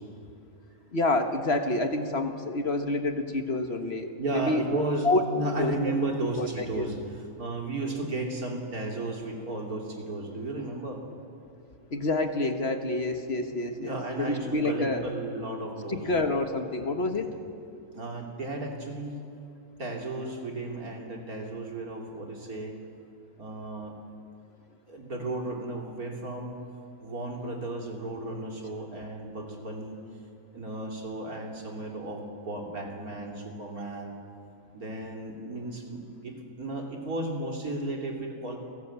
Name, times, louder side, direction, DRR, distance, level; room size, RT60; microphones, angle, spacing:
voice 1, 0.9-4.6 5.0-5.2 5.6-5.8 6.4-6.9 11.9-15.0 15.9-17.3, left 2 dB, 45° left, 6 dB, 1.6 m, -28 dB
voice 2, 4.2-11.0 13.8-16.1 17.2-17.3 17.9-19.3 19.8-22.8 23.4-24.0 24.9-26.6 27.0-30.0 30.5-34.1 34.7-38.6, right 2 dB, 75° right, 1 dB, 3.5 m, -34 dB
28.5 x 18.0 x 8.2 m, 2.5 s
omnidirectional pair, 1.6 m